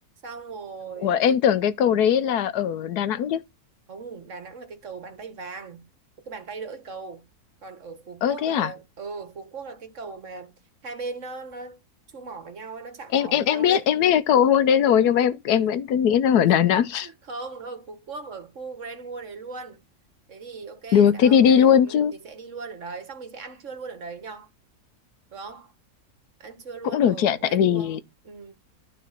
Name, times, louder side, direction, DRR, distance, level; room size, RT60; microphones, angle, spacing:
voice 1, 0.2-1.4 3.9-5.9 6.3-7.3 7.6-11.8 12.1-13.9 15.5-15.7 16.4-16.5 17.0-19.8 20.3-24.5 25.3-25.7 26.4-28.0 28.2-28.5, right 4 dB, 55° right, 1.7 m, -39 dB
voice 2, 1.0-3.4 8.2-8.7 13.1-17.1 20.9-22.1 26.8-28.0, left 8 dB, 85° left, 1.3 m, -20 dB
12.0 x 4.0 x 5.8 m
omnidirectional pair, 1.6 m